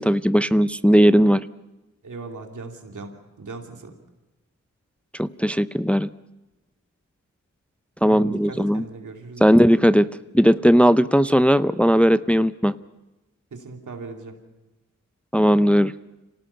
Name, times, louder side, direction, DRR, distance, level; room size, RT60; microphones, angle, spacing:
voice 1, 0.0-1.4 5.2-6.1 8.0-8.8 9.4-10.1 10.3-12.7 15.3-15.9, equal, 5° left, 14 dB, 0.6 m, -17 dB
voice 2, 2.0-3.9 8.1-9.5 13.5-14.3, right 3 dB, 85° right, 3 dB, 2.8 m, -38 dB
26.0 x 18.0 x 5.7 m, 1.1 s
cardioid pair, 45°, 30 cm